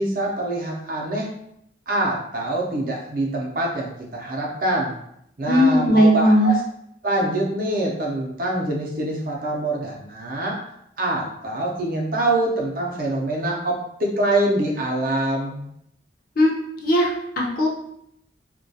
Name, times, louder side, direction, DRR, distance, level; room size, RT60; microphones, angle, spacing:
voice 1, 0.0-1.3 1.9-5.0 5.4-6.6 7.0-10.6 11.0-15.7, right 1 dB, 50° right, -1 dB, 0.5 m, -25 dB
voice 2, 5.5-6.5 16.4-17.7, equal, 50° left, -2 dB, 0.6 m, -18 dB
2.2 x 2.2 x 2.6 m, 0.75 s
head